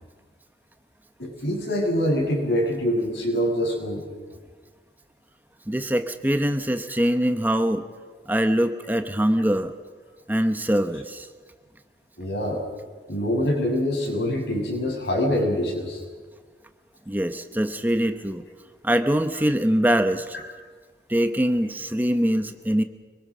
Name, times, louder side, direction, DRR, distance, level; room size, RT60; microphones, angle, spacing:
voice 1, 1.2-4.0 12.2-12.6 13.1-16.0, equal, 75° left, 0 dB, 7.6 m, -24 dB
voice 2, 5.7-7.8 8.3-9.7 10.3-11.3 17.1-18.4 18.8-20.4 21.1-22.8, equal, 10° right, 8 dB, 0.9 m, -23 dB
25.5 x 23.5 x 6.3 m, 1.5 s
head